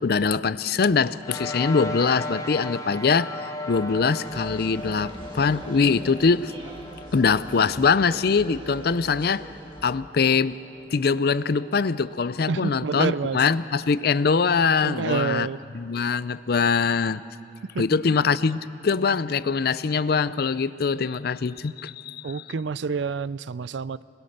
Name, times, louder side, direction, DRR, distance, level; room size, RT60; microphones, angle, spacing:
voice 1, 0.0-6.5 7.1-9.5 9.8-10.6 10.9-15.5 15.7-17.2 17.8-22.3, left 5 dB, 55° left, 16 dB, 0.5 m, -23 dB
sound 1, 1.2-13.9, left 2 dB, 20° left, 1.1 m, -38 dB
sound 2, 4.2-9.9, right 1 dB, 30° right, 1.8 m, -43 dB
voice 2, 12.5-13.4 14.8-15.6 17.7-18.2 22.2-24.0, right 5 dB, 80° right, 18 dB, 0.4 m, -28 dB
26.5 x 20.0 x 6.6 m, 2.5 s
head